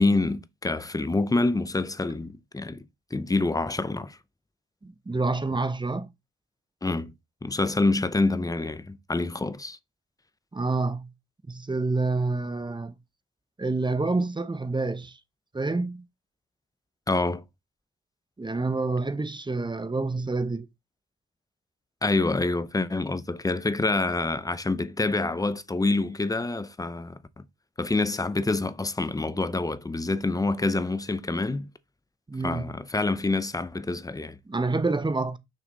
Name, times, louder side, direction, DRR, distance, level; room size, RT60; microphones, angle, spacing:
voice 1, 0.0-2.9 3.1-4.2 6.8-7.1 7.4-9.8 17.1-17.4 22.0-27.2 27.8-31.7 32.4-34.4, left 2 dB, 10° left, 0.7 m, -26 dB
voice 2, 4.8-6.1 10.5-11.1 11.5-12.9 13.6-15.1 15.5-16.0 18.4-20.6 32.3-32.7 34.5-35.4, right 3 dB, 15° right, 1.0 m, -28 dB
6.4 x 5.8 x 4.0 m
cardioid pair, 90°, 30 cm